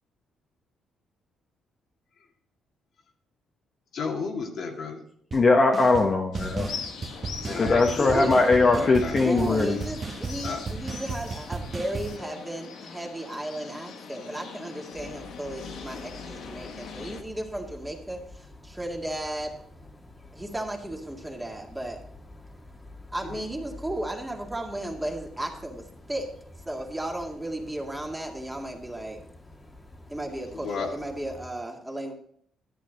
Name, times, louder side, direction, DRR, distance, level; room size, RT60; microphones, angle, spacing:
voice 1, 3.9-5.0 7.4-8.3 8.7-9.1 10.4-10.6 23.2-23.5 30.5-30.9, left 5 dB, 65° left, 1 dB, 1.8 m, -33 dB
voice 2, 5.3-6.7 7.6-9.8, left 3 dB, 40° left, 0 dB, 1.2 m, -20 dB
sound 1, 5.3-5.4 5.7-6.1 6.3-12.2, right 4 dB, 40° right, 1.3 m, -35 dB
sound 2, 6.3-17.2, left 6 dB, 80° left, 1.3 m, -41 dB
voice 3, 9.2-19.6 20.3-22.0 23.1-26.3 26.7-29.2 30.1-32.1, right 1 dB, 10° right, 1 dB, 1.9 m, -34 dB
sound 3, 14.9-31.5, left 2 dB, 20° left, 1.6 m, -48 dB
11.0 x 8.4 x 4.0 m, 0.65 s
cardioid pair, 90°, 0 cm